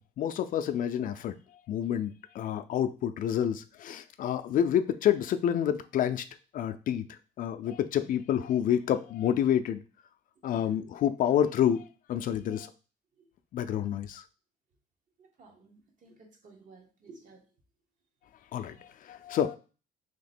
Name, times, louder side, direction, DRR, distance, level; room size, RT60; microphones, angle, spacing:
voice 1, 0.2-1.4 1.7-6.2 6.5-9.8 10.4-12.7 13.5-14.2 18.5-19.6, left 10 dB, 55° left, 0.4 m, -28 dB
voice 2, 10.5-10.8 13.2-13.3 15.2-17.5 18.7-18.8, right 4 dB, 50° right, 1.2 m, -55 dB
3.2 x 2.9 x 4.2 m
cardioid pair, 110°, 17 cm